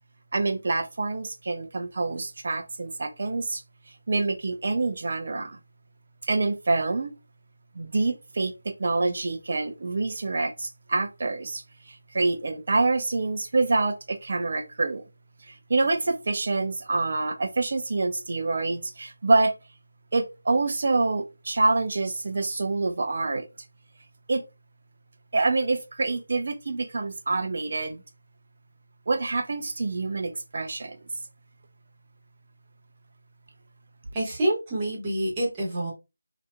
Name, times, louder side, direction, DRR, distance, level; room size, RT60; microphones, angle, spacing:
voice 1, 0.3-3.6 4.1-5.6 6.3-7.1 7.7-15.0 15.4-19.5 20.1-23.5 24.3-24.4 25.3-28.0 29.1-31.0, right 3 dB, 45° right, 0.6 m, -26 dB
voice 2, 34.1-35.9, right 1 dB, 15° right, 1.1 m, -27 dB
2.8 x 2.5 x 2.2 m
figure-of-eight pair, 165°, 0 cm